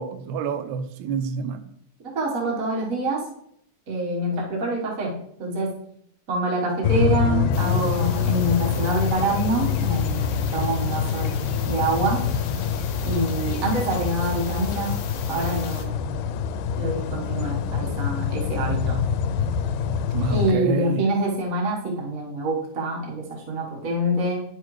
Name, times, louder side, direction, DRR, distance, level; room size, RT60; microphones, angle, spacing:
voice 1, 0.0-1.7 20.1-21.1, right 5 dB, 75° right, 8 dB, 1.9 m, -28 dB
voice 2, 2.1-3.2 3.9-5.7 6.3-12.3 13.0-14.9 15.3-16.2 16.8-19.0 20.3-24.4, right 2 dB, 55° right, -1 dB, 0.9 m, -26 dB
sound 1, 6.8-20.5, left 7 dB, 90° left, 2.2 m, -25 dB
sound 2, 7.5-15.8, left 6 dB, 75° left, 1.4 m, -38 dB
9.8 x 6.6 x 3.2 m, 0.71 s
omnidirectional pair, 3.7 m